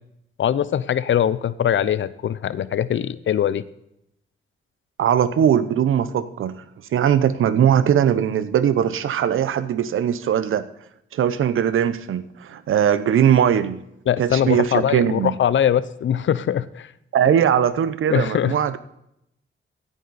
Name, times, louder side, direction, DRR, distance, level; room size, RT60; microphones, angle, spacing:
voice 1, 0.4-3.6 14.1-16.9 18.1-18.5, left 9 dB, 70° left, 17 dB, 0.7 m, -22 dB
voice 2, 5.0-6.5 6.9-10.6 11.1-13.8 14.2-15.3 17.1-18.8, right 9 dB, 85° right, 14 dB, 0.8 m, -20 dB
16.0 x 9.1 x 4.2 m, 0.79 s
cardioid pair, 100°, 20 cm